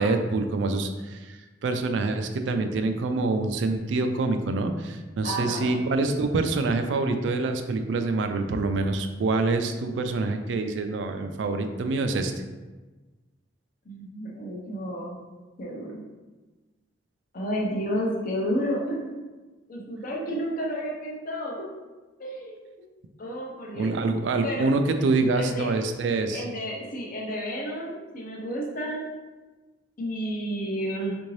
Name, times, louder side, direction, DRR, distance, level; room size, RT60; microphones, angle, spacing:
voice 1, 0.0-12.3 23.7-26.4, right 3 dB, 70° right, 7 dB, 0.3 m, -26 dB
voice 2, 5.2-5.8 13.8-15.2 15.6-16.0 17.3-19.3 19.7-21.7 22.2-22.6 23.2-23.9 24.4-24.7 25.3-25.7 26.3-29.1 30.0-31.2, equal, 50° left, -2 dB, 0.6 m, -31 dB
3.6 x 2.6 x 3.1 m, 1.2 s
head